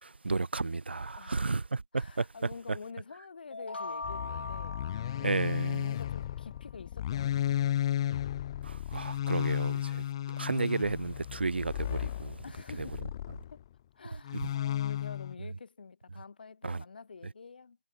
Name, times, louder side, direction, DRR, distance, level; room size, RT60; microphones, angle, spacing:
voice 1, 0.0-2.3 5.2-5.9 8.6-10.0 10.4-12.4 12.8-12.9 16.6-16.8, right 3 dB, 75° right, 1.8 m, -32 dB
voice 2, 1.1-1.6 1.9-4.8 5.7-8.0 12.4-13.1 13.5-13.6 13.9-17.8, left 5 dB, 60° left, 4.6 m, -48 dB
sound 1, 3.5-6.3, left 3 dB, 80° left, 6.1 m, -41 dB
sound 2, 4.0-13.6 14.2-15.3, left 11 dB, 30° left, 0.4 m, -34 dB
figure-of-eight pair, 150°, 6 cm